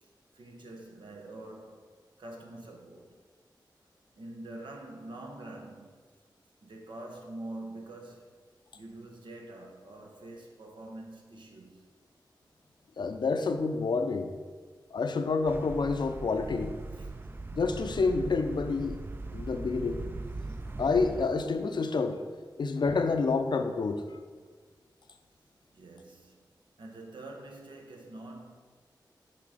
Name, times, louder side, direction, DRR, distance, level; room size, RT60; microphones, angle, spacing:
voice 1, 0.0-3.2 4.1-6.0 6.6-8.3 8.7-11.9 16.9-17.2 25.7-26.4 26.8-28.5, right 2 dB, 85° right, 1.0 m, -45 dB
voice 2, 13.0-14.3 14.9-16.7 17.5-19.0 19.3-20.0 20.8-22.2 22.6-24.0, left 4 dB, 70° left, 0.5 m, -28 dB
sound 1, 15.5-21.3, right 2 dB, 25° right, 0.3 m, -40 dB
6.0 x 3.9 x 4.9 m
cardioid pair, 55°, 8 cm